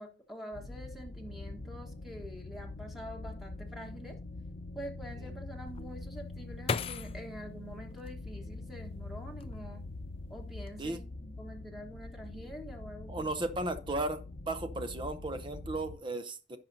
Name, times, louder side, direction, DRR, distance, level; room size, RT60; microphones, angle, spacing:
voice 1, 0.0-4.2 4.7-9.8 10.3-13.3, equal, ahead, 1.2 m, -46 dB
sound 1, 0.5-16.0, left 2 dB, 60° left, 0.7 m, -44 dB
sound 2, 5.7-8.8 9.3-10.0 10.3-10.8, left 5 dB, 35° left, 0.3 m, -39 dB
voice 2, 13.1-14.2 14.5-16.6, right 2 dB, 30° right, 0.6 m, -35 dB
16.0 x 5.8 x 2.7 m
head